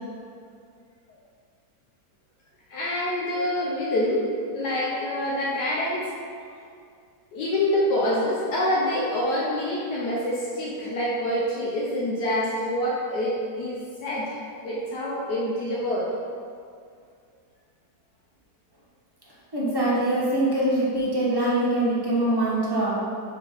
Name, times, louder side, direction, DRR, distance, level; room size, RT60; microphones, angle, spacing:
voice 1, 2.7-6.1 7.3-16.1, left 1 dB, 75° left, -5 dB, 1.3 m, -26 dB
voice 2, 19.5-22.9, right 1 dB, 15° right, -7 dB, 1.1 m, -23 dB
5.0 x 3.6 x 5.3 m, 2.2 s
omnidirectional pair, 1.8 m